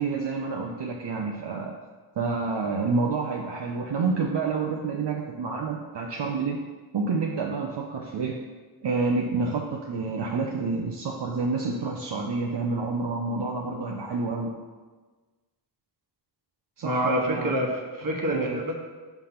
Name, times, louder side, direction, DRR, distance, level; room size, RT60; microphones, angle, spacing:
voice 1, 0.0-1.7 2.2-6.6 6.9-8.4 8.8-14.5 16.8-17.5 18.3-18.6, right 4 dB, 75° right, 0 dB, 0.7 m, -28 dB
voice 2, 16.8-18.7, equal, 50° right, 1 dB, 1.2 m, -27 dB
5.9 x 3.4 x 5.6 m, 1.3 s
cardioid pair, 50°, 43 cm